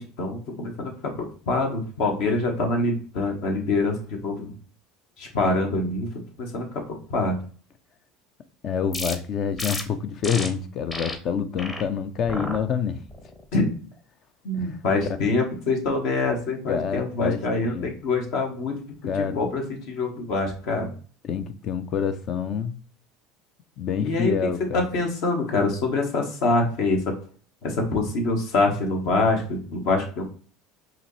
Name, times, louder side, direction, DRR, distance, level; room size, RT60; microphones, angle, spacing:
voice 1, 0.0-4.5 5.2-6.1 6.4-7.4 13.5-13.7 14.4-18.7 19.2-20.9 24.0-24.3 24.7-27.1 27.6-30.2, left 2 dB, 65° left, 1.4 m, -25 dB
voice 2, 8.6-13.0 14.6-14.8 16.7-17.9 19.1-19.4 21.2-22.8 23.8-24.8, left 7 dB, 50° left, 0.5 m, -27 dB
sound 1, 8.9-9.1 9.6-9.8 10.2-10.5 10.9-11.1 11.6-11.8 12.3-12.6 13.1-13.4, left 2 dB, 25° left, 0.9 m, -32 dB
4.9 x 2.9 x 3.2 m
hypercardioid pair, 85°, 0 cm